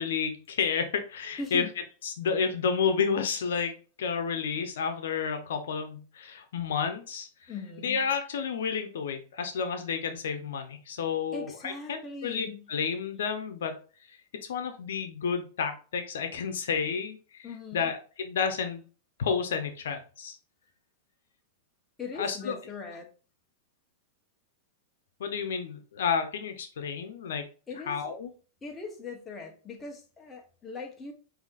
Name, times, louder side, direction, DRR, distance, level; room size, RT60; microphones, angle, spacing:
voice 1, 0.0-1.6 2.0-7.5 7.8-13.7 14.5-17.5 17.7-18.8 19.2-20.4 22.2-22.6 25.2-27.5 27.9-28.3, left 6 dB, 80° left, 7 dB, 0.8 m, -31 dB
voice 2, 1.4-1.7 7.5-8.0 11.3-12.7 17.4-17.9 22.0-23.1 27.7-27.9 28.6-31.1, left 3 dB, 15° left, 1 dB, 1.0 m, -40 dB
5.5 x 2.8 x 2.5 m, 0.36 s
hypercardioid pair, 140°, 0 cm